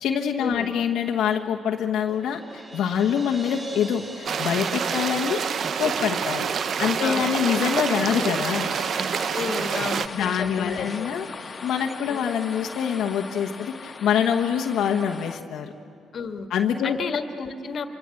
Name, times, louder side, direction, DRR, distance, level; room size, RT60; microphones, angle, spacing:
voice 1, 0.0-5.4 5.8-6.5 6.8-8.7 10.1-15.7 16.5-17.0, left 8 dB, 80° left, 1 dB, 1.2 m, -25 dB
Crash cymbal, 2.1-7.0, right 1 dB, 30° right, 2.3 m, -42 dB
sound 1, 4.3-10.1, right 6 dB, 55° right, 0.8 m, -27 dB
sound 2, 6.2-15.4, left 4 dB, 35° left, 1.4 m, -40 dB
voice 2, 7.0-7.3 9.3-11.1 12.1-12.2 16.1-16.5 16.8-17.9, left 5 dB, 55° left, 7 dB, 1.7 m, -31 dB
26.0 x 24.0 x 7.8 m, 2.5 s
cardioid pair, 90°, 0 cm